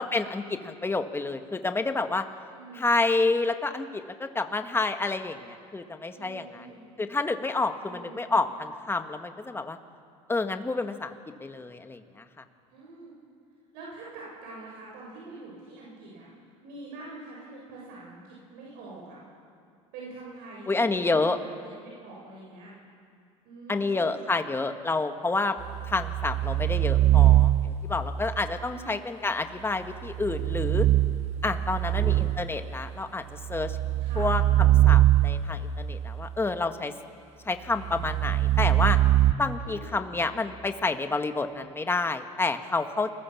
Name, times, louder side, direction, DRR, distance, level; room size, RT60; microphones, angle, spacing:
voice 1, 0.0-2.2 2.7-6.7 7.0-9.8 10.3-11.1 11.4-12.2 20.7-21.4 23.7-25.6 25.9-30.9 31.4-33.8 34.2-36.9 37.4-39.0 39.4-43.1, left 3 dB, 15° left, 7 dB, 1.7 m, -29 dB
voice 2, 2.5-2.9 6.1-6.9 7.8-8.4 12.7-13.1 13.7-16.3 16.6-19.2 19.9-22.7 23.4-24.2 28.7-29.0 31.8-32.2 34.0-34.3 39.6-40.0, right 3 dB, 65° right, -4 dB, 7.0 m, -45 dB
sound 1, 25.6-28.0 30.1-32.6 33.3-35.8 37.8-39.3, right 14 dB, 45° right, 0.9 m, -22 dB
29.0 x 21.5 x 7.3 m, 2.4 s
hypercardioid pair, 85°, 17 cm